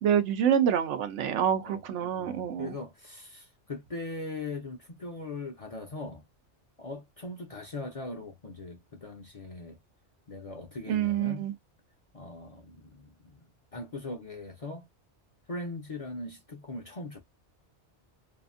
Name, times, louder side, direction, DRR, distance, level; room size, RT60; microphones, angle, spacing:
voice 1, 0.0-2.7 10.9-11.5, right 9 dB, 85° right, 1.0 m, -27 dB
voice 2, 1.6-6.2 6.8-9.8 10.3-11.5 12.1-13.5 13.7-14.9 15.5-17.2, left 2 dB, 40° left, 0.5 m, -40 dB
2.8 x 2.5 x 2.4 m
omnidirectional pair, 1.2 m